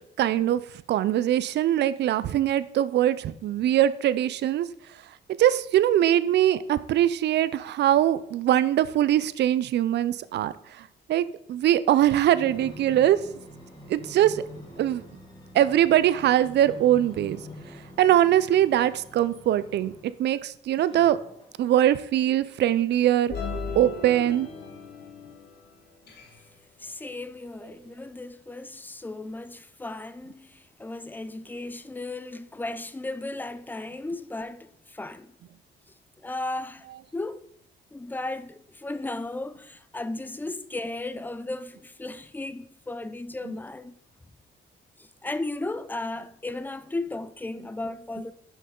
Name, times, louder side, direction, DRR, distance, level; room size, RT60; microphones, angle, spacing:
voice 1, 0.2-0.6 0.9-4.7 5.4-13.2 13.9-14.4 14.8-15.0 15.5-17.4 18.0-19.9 20.2-21.2 21.6-23.3 23.8-24.5, right 12 dB, 60° right, 0.4 m, -22 dB
sound 1, 12.2-20.2 20.8-22.0 22.7-22.8, left 1 dB, 25° left, 2.2 m, -46 dB
sound 2, 23.3-25.6 26.1-26.4, left 4 dB, 55° left, 1.3 m, -36 dB
voice 2, 26.8-35.3 36.2-36.9 37.1-37.5 37.9-44.0 45.0-48.3, left 2 dB, 10° left, 0.4 m, -35 dB
6.2 x 5.6 x 3.7 m
cardioid pair, 90°, 20 cm